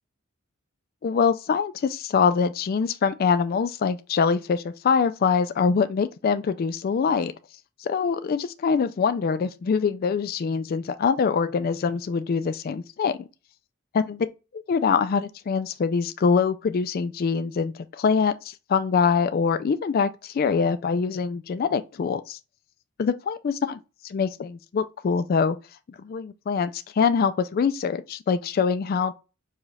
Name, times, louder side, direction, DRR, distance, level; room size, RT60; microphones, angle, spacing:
voice 1, 1.0-7.3 7.8-13.2 13.9-14.3 14.7-22.4 23.0-25.6 26.0-29.1, left 5 dB, 45° left, 0.3 m, -24 dB
4.9 x 2.3 x 4.0 m
head